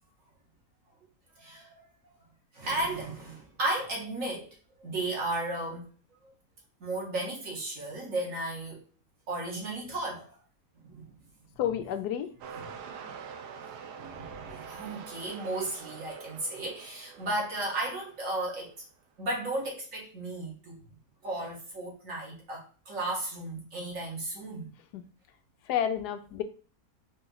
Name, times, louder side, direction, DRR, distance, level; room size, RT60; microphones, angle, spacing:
voice 1, 1.4-1.8 2.5-4.5 4.8-5.9 6.8-8.8 9.3-10.4 10.8-11.2 12.6-12.8 13.9-18.7 19.2-20.8 21.2-24.7, right 2 dB, 55° right, -3 dB, 1.8 m, -34 dB
voice 2, 11.6-12.3 24.9-25.1 25.7-26.4, left 9 dB, 80° left, 9 dB, 1.1 m, -30 dB
sound 1, 12.4-18.8 19.5-19.6, right 6 dB, 85° right, 1.2 m, -45 dB
4.3 x 3.0 x 3.8 m, 0.39 s
omnidirectional pair, 1.7 m